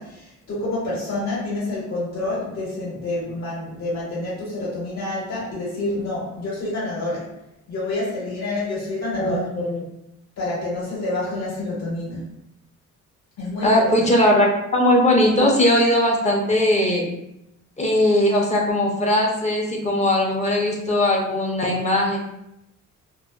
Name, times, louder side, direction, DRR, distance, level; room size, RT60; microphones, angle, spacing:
voice 1, 0.0-7.3 7.7-9.4 10.4-12.2 13.4-14.1, left 2 dB, 65° left, -6 dB, 1.4 m, -28 dB
voice 2, 9.2-9.8 13.6-17.0 17.8-22.2, left 1 dB, 25° left, -1 dB, 0.5 m, -19 dB
2.6 x 2.1 x 2.2 m, 0.83 s
cardioid pair, 90°, 30 cm